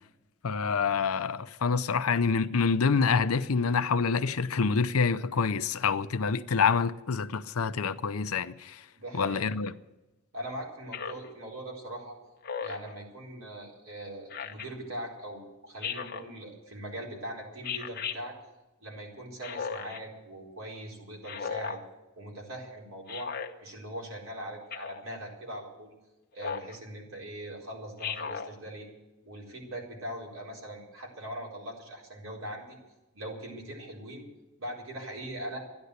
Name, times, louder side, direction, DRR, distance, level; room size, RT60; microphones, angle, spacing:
voice 1, 0.4-8.8 9.1-9.7, left 5 dB, 85° left, 0.6 m, -27 dB
voice 2, 9.0-9.5 10.3-12.2 12.6-18.3 18.8-21.8 22.1-23.3 23.6-25.9 26.3-28.9 29.2-32.8 33.1-34.2 34.6-35.6, right 1 dB, 70° right, 4.2 m, -41 dB
Speech synthesizer, 10.9-11.3 12.4-12.9 14.3-14.7 15.8-16.3 17.6-18.2 19.4-20.0 21.2-21.8 23.1-23.5 24.7-25.0 26.4-26.7 28.0-28.5, left 6 dB, 45° left, 1.0 m, -36 dB
13.0 x 10.5 x 8.2 m
head